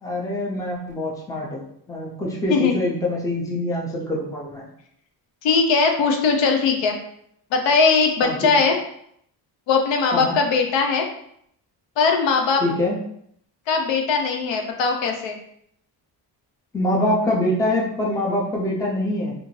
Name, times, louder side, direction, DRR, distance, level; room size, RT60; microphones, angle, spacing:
voice 1, 0.0-1.6 1.9-4.7 8.2-8.5 10.1-10.4 12.6-13.0 16.7-19.3, left 1 dB, 10° left, -2 dB, 0.4 m, -24 dB
voice 2, 5.4-7.0 7.5-8.8 9.7-11.1 12.0-12.6 13.7-15.4, left 4 dB, 80° left, 3 dB, 0.6 m, -20 dB
2.5 x 2.5 x 3.0 m, 0.70 s
cardioid pair, 150°, 43 cm